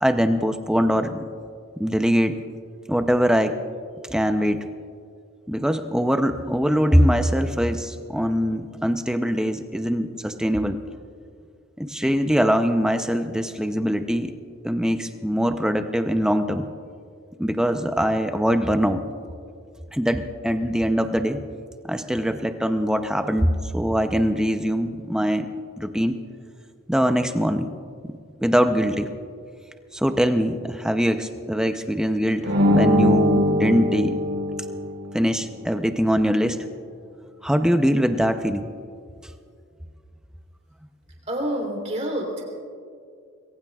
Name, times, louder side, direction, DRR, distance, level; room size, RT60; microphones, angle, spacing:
voice 1, 0.0-1.2 1.8-2.4 2.9-3.6 4.1-4.6 5.5-10.8 11.8-14.4 14.6-16.7 17.4-19.0 19.9-21.4 21.8-26.2 26.9-27.7 28.0-28.1 28.4-29.1 29.9-34.2 35.1-36.6 37.4-38.7, equal, 5° right, 7 dB, 0.6 m, -22 dB
sound 1, 32.4-35.1, left 1 dB, 55° right, 3.9 m, -21 dB
voice 2, 41.3-42.6, right 1 dB, 30° right, -1 dB, 3.6 m, -28 dB
27.0 x 21.5 x 2.4 m, 2.3 s
head